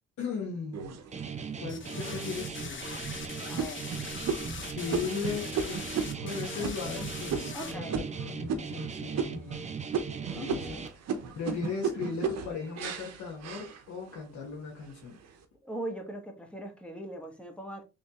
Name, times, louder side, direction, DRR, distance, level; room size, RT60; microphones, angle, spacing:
voice 1, 0.2-1.0 1.6-2.9 4.5-5.8 6.2-9.7 10.3-10.8 11.3-15.2, left 5 dB, 65° left, 1.2 m, -37 dB
sound 1, 0.7-1.6 2.2-2.3 2.8-3.1 3.6-8.9 9.1-9.6 9.9-14.2 14.7-15.3, right 6 dB, 60° right, 0.7 m, -35 dB
Guitar, 1.1-10.9, right 6 dB, 25° right, 0.5 m, -39 dB
sound 2, 1.7-7.7, left 4 dB, 40° left, 0.8 m, -41 dB
voice 2, 3.5-3.9 7.5-8.0 10.4-10.8 15.6-17.8, right 1 dB, 5° left, 1.1 m, -40 dB
3.3 x 3.2 x 2.8 m
cardioid pair, 90°, 30 cm